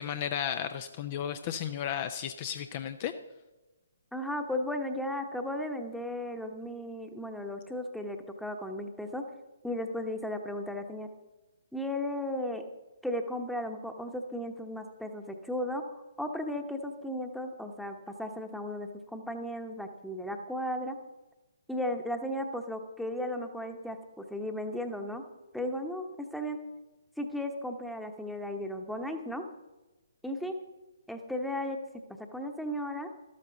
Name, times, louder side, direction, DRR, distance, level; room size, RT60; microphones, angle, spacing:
voice 1, 0.0-3.1, left 9 dB, 35° left, 10 dB, 0.6 m, -34 dB
voice 2, 4.1-9.2 9.6-11.1 11.7-12.7 13.0-21.0 21.7-25.2 25.5-26.6 27.2-29.4 30.2-30.6 31.1-31.8 32.3-33.1, left 1 dB, ahead, 5 dB, 1.1 m, -35 dB
13.0 x 12.5 x 4.0 m, 1.1 s
figure-of-eight pair, 130°, 0 cm